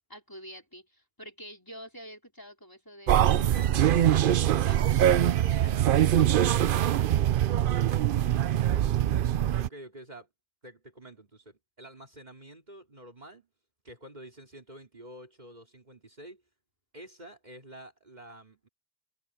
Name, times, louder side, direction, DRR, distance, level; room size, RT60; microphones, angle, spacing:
voice 1, 0.1-6.3, equal, 20° left, 4.5 m, -47 dB
sound 1, 3.1-9.7, right 11 dB, 65° right, 0.7 m, -23 dB
voice 2, 9.5-10.3 10.6-13.5 13.8-16.4 16.9-18.7, right 1 dB, 45° right, 3.1 m, -48 dB
omnidirectional pair, 1.0 m